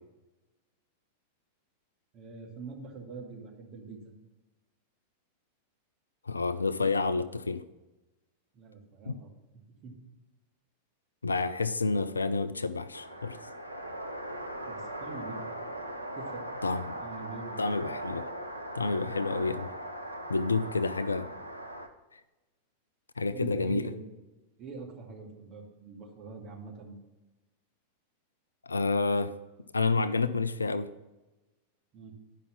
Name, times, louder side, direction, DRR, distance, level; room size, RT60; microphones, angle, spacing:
voice 1, 2.1-4.1 8.5-9.3 9.8-9.9 14.6-15.6 16.1-16.4 17.0-17.6 19.2-19.3 23.3-24.0 24.6-27.0 31.9-32.1, right 4 dB, 35° right, -1 dB, 2.3 m, -44 dB
voice 2, 6.3-7.6 9.0-9.2 11.2-13.4 16.6-16.9 17.6-18.2 18.7-19.7 20.3-21.3 23.2-23.8 28.7-29.3 29.7-30.9, left 3 dB, 75° left, 14 dB, 0.4 m, -29 dB
sound 1, 12.9-21.9, right 1 dB, 90° right, 0.8 m, -39 dB
10.5 x 5.5 x 5.6 m, 1.1 s
figure-of-eight pair, 90°, 0 cm